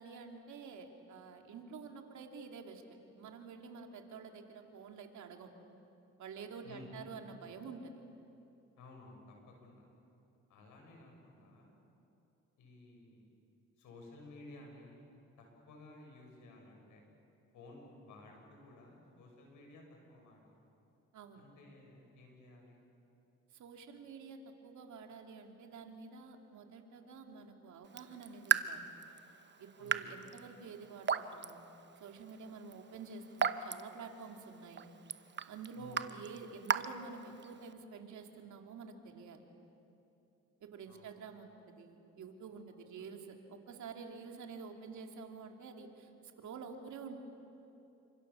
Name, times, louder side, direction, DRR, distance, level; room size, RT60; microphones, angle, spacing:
voice 1, 0.0-2.8 3.1-5.5 6.2-7.9 21.1-21.4 23.5-28.9 29.6-31.6 32.0-34.9 35.5-39.4 40.6-46.1 46.4-47.2, right 5 dB, 70° right, 3 dB, 3.0 m, -49 dB
voice 2, 6.6-7.1 8.8-9.9 10.5-11.8 12.6-13.3 13.8-15.0 15.4-17.0 17.5-20.6 21.4-22.8 29.8-30.1 35.7-36.1 40.8-41.1, left 2 dB, 85° left, 1 dB, 7.0 m, -55 dB
Raindrop / Drip, 27.8-37.7, right 7 dB, 35° right, 1.0 m, -38 dB
29.5 x 26.0 x 7.2 m, 2.9 s
cardioid pair, 90°, 30 cm